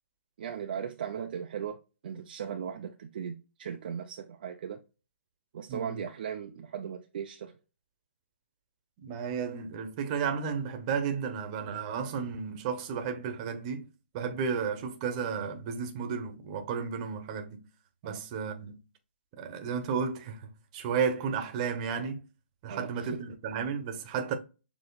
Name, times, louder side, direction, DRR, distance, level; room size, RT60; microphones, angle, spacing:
voice 1, 0.4-4.8 5.5-7.6 18.0-18.2 22.7-23.2, right 8 dB, 45° right, 0.6 m, -38 dB
voice 2, 5.7-6.0 9.0-13.9 14.1-17.6 18.0-18.8 19.4-22.2 22.6-24.3, right 6 dB, 30° right, 1.0 m, -33 dB
6.9 x 3.0 x 2.3 m
hypercardioid pair, 150°, 7 cm